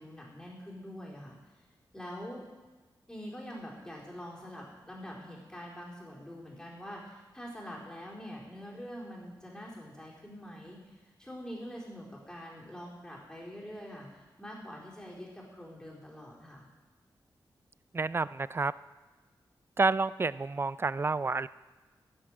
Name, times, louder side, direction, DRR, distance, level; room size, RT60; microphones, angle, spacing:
voice 1, 0.0-1.4 1.9-2.5 3.1-16.7, equal, 10° left, -4 dB, 4.2 m, -45 dB
voice 2, 17.9-18.7 19.8-21.5, right 3 dB, 30° right, 17 dB, 0.4 m, -29 dB
11.5 x 8.4 x 7.9 m, 1.3 s
cardioid pair, 80°, 8 cm